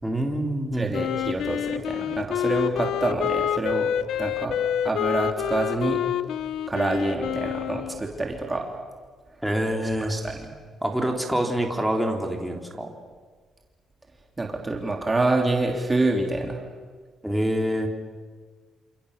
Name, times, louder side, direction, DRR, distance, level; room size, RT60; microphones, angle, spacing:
voice 1, 0.0-0.9 9.4-10.2 10.8-12.9 17.2-17.9, right 1 dB, 5° right, 1 dB, 3.8 m, -26 dB
voice 2, 0.7-3.9 4.2-4.6 4.8-6.0 6.7-8.7 10.0-10.5 14.4-16.6, right 2 dB, 20° right, 1 dB, 3.3 m, -26 dB
Wind instrument woodwind instrument, 0.9-8.0, left 10 dB, 75° left, 0.9 m, -28 dB
28.5 x 27.5 x 6.9 m, 1.5 s
cardioid pair, 90°, 0 cm